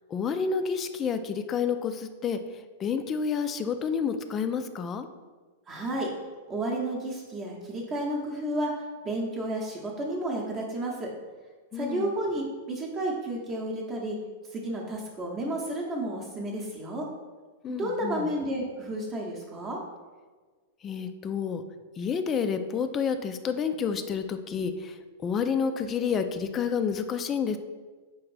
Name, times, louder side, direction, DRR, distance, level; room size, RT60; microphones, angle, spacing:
voice 1, 0.1-5.1 11.7-12.2 17.6-18.3 20.8-21.6 22.0-27.6, left 6 dB, 30° left, 9 dB, 0.3 m, -29 dB
voice 2, 5.7-6.1 6.5-8.7 9.0-11.1 11.7-14.2 14.5-17.1 17.7-19.8, right 1 dB, 30° right, -2 dB, 0.7 m, -31 dB
4.7 x 2.5 x 3.2 m, 1.4 s
hypercardioid pair, 110°, 0 cm